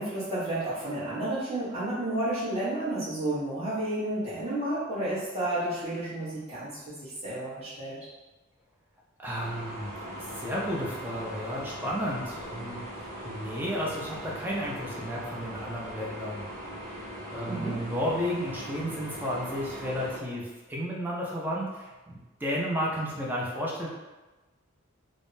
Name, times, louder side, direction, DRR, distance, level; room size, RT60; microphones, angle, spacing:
voice 1, 0.0-8.0 17.5-17.8, right 1 dB, 30° right, -12 dB, 1.1 m, -31 dB
voice 2, 9.2-16.5 16.8-17.0 17.3-23.9, equal, 10° right, -4 dB, 0.4 m, -33 dB
sound 1, 9.4-20.2, equal, 60° right, 1.5 m, -40 dB
3.4 x 2.1 x 2.6 m, 1.2 s
head